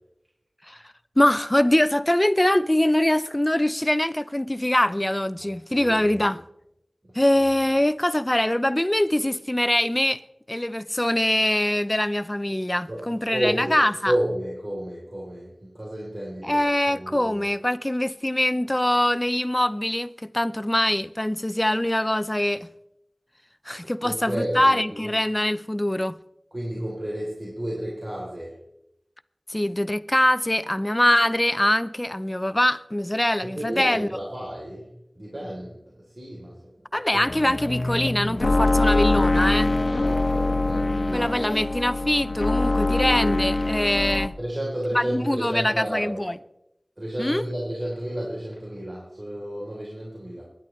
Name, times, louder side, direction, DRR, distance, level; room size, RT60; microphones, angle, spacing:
voice 1, 1.2-6.4 7.1-10.2 10.5-14.1 16.4-22.7 23.7-26.1 29.5-34.1 36.9-39.7 41.1-44.4 44.9-46.3 47.2-47.5, left 1 dB, 25° left, 0.6 m, -23 dB
voice 2, 5.7-6.2 7.1-7.2 12.9-13.8 14.1-16.6 16.9-17.4 24.0-25.1 26.5-28.6 33.4-34.9 35.2-37.3 39.9-41.6 42.6-43.4 44.4-46.2 47.0-50.4, right 1 dB, 50° right, 3.7 m, -32 dB
sound 1, 37.3-44.3, left 2 dB, 80° left, 1.0 m, -23 dB
24.5 x 11.0 x 3.3 m
wide cardioid pair, 50°, 0 cm